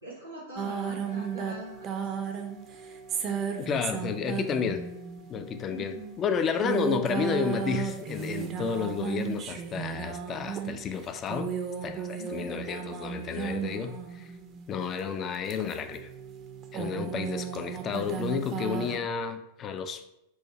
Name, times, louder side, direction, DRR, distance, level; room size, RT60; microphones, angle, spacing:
voice 1, 0.0-2.1 5.7-6.1 12.2-12.5, equal, 90° left, -8 dB, 0.9 m, -43 dB
sound 1, 0.6-14.7 15.3-19.0, right 7 dB, 30° right, 0.5 m, -35 dB
voice 2, 3.6-4.9 5.3-11.5 11.8-14.3 14.7-16.1 16.7-20.0, left 6 dB, 30° left, 9 dB, 0.4 m, -31 dB
4.7 x 2.3 x 4.0 m, 0.86 s
figure-of-eight pair, 90°, 0 cm